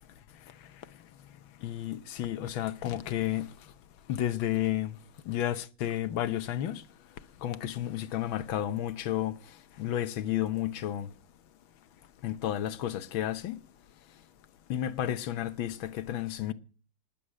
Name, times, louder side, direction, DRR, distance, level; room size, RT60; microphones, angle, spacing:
voice 1, 1.6-3.5 4.1-5.0 5.3-6.8 7.4-9.4 9.8-11.1 12.2-13.6 14.7-16.5, left 12 dB, 70° left, 1.6 m, -31 dB
20.0 x 8.7 x 6.4 m
omnidirectional pair, 2.4 m